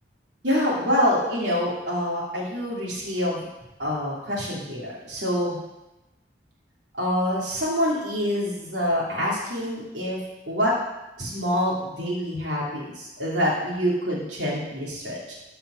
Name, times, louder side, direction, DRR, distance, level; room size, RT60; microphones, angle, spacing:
voice 1, 0.4-3.5 3.8-5.6 7.0-10.2 10.5-10.7 11.2-15.3, equal, 85° right, -5 dB, 2.9 m, -26 dB
13.0 x 5.6 x 6.4 m, 0.98 s
head